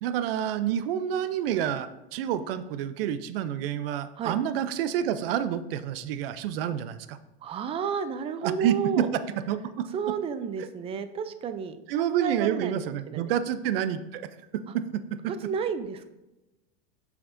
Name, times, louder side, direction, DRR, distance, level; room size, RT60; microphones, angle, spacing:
voice 1, 0.0-7.2 8.4-9.0 9.5-9.9 11.9-14.3 14.5-15.2, right 9 dB, 75° right, 13 dB, 0.6 m, -28 dB
voice 2, 7.4-9.1 9.9-12.8 13.1-13.3 15.3-16.1, right 6 dB, 20° right, 11 dB, 0.4 m, -31 dB
8.0 x 5.8 x 2.6 m, 0.99 s
supercardioid pair, 135°, 29 cm